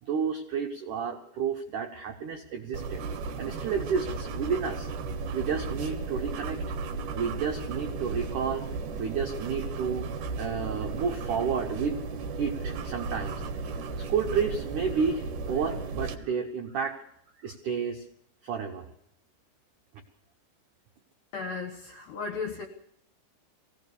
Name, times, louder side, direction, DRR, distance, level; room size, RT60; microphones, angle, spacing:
voice 1, 0.0-3.0 3.4-4.9 5.3-6.6 7.1-8.6 9.0-10.1 10.4-12.0 12.4-13.4 13.8-17.0 17.4-18.0 18.4-18.9, right 6 dB, 90° right, 4 dB, 1.7 m, -31 dB
sound 1, 2.7-16.1, right 4 dB, 70° right, 1.9 m, -35 dB
voice 2, 21.3-22.7, left 4 dB, 65° left, 5 dB, 2.5 m, -35 dB
22.0 x 17.0 x 7.0 m, 0.69 s
omnidirectional pair, 5.8 m